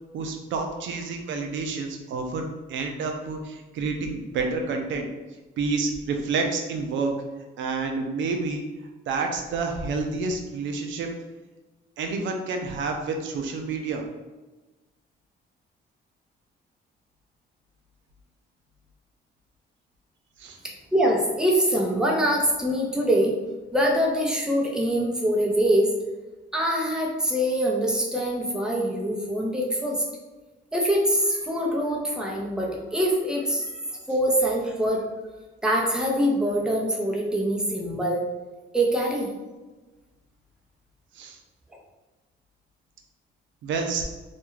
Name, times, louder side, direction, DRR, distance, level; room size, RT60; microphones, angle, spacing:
voice 1, 0.1-5.1 5.6-7.2 7.6-8.6 9.1-11.1 12.0-14.0 20.4-20.6 41.1-41.4 43.6-44.0, right 4 dB, 70° right, 3 dB, 0.4 m, -29 dB
voice 2, 20.9-23.3 23.7-25.9 26.5-30.0 30.7-33.8 34.1-35.0 35.6-38.2 38.7-39.3, equal, 5° right, -2 dB, 0.6 m, -24 dB
2.3 x 2.2 x 3.0 m, 1.2 s
cardioid pair, 90°, 20 cm